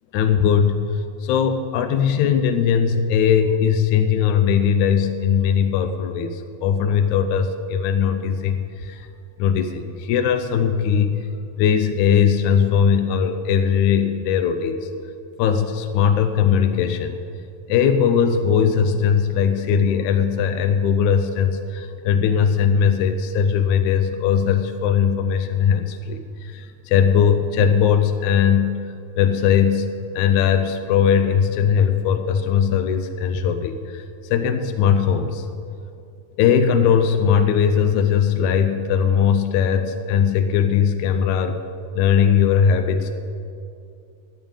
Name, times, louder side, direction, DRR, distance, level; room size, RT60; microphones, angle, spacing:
voice 1, 0.1-0.8 1.2-8.6 8.8-9.0 9.4-11.2 11.6-14.9 15.4-17.2 17.7-28.8 29.2-34.0 34.3-35.4 36.4-41.6 42.0-43.1, left 7 dB, 80° left, 7 dB, 1.9 m, -19 dB
10.5 x 9.1 x 8.7 m, 2.5 s
omnidirectional pair, 3.8 m